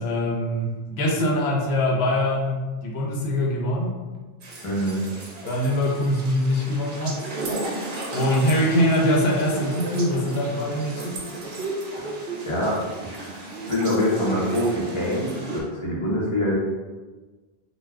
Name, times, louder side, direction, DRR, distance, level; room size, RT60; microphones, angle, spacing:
voice 1, 0.0-4.0 5.4-7.3 8.1-11.2, left 1 dB, 90° left, -2 dB, 0.9 m, -23 dB
sound 1, 4.4-15.6, right 2 dB, 60° right, 0.8 m, -34 dB
voice 2, 4.6-5.0 12.0-12.2 12.5-16.5, left 1 dB, 35° left, -5 dB, 0.7 m, -25 dB
2.3 x 2.3 x 3.3 m, 1.3 s
omnidirectional pair, 1.0 m